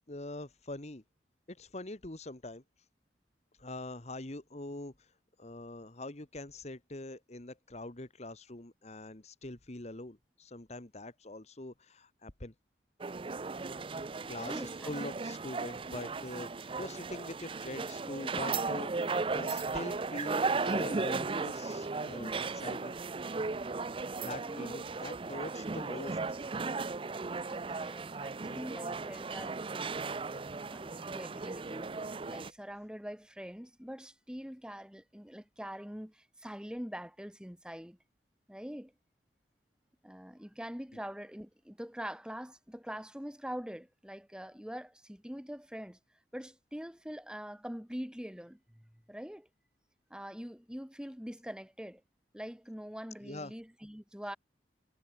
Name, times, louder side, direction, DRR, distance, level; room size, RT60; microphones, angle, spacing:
voice 1, 0.1-1.0 1.5-2.6 3.6-5.1 5.4-12.5 14.3-23.0 24.2-26.2 53.2-53.5, left 2 dB, 40° left, 1.4 m, -43 dB
sound 1, 13.0-32.5, right 4 dB, 30° right, 0.5 m, -36 dB
voice 2, 13.9-14.9 24.4-24.7 27.5-38.0 38.5-38.9 40.0-46.0 46.3-49.5 50.1-52.0 52.3-54.4, equal, 5° right, 2.0 m, -44 dB
head